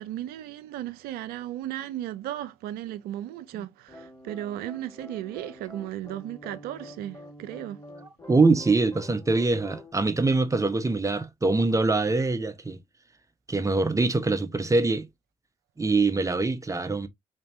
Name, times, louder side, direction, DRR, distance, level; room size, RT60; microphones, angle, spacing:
voice 1, 0.0-7.8, right 13 dB, 70° right, 0.4 m, -35 dB
sound 1, 3.9-9.9, left 1 dB, 25° left, 2.8 m, -46 dB
voice 2, 8.3-12.8 13.5-15.1 15.8-17.1, right 3 dB, 20° right, 0.8 m, -23 dB
3.9 x 3.3 x 2.5 m
hypercardioid pair, 45°, 17 cm